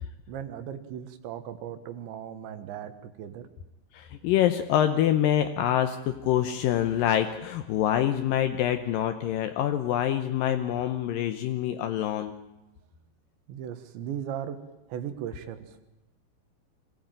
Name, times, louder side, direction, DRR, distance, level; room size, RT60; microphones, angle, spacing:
voice 1, 0.3-3.5 13.5-14.6 14.9-15.8, right 9 dB, 80° right, 10 dB, 3.6 m, -37 dB
voice 2, 3.9-12.3, left 11 dB, 80° left, 8 dB, 2.0 m, -26 dB
24.0 x 16.0 x 9.1 m, 0.99 s
omnidirectional pair, 5.2 m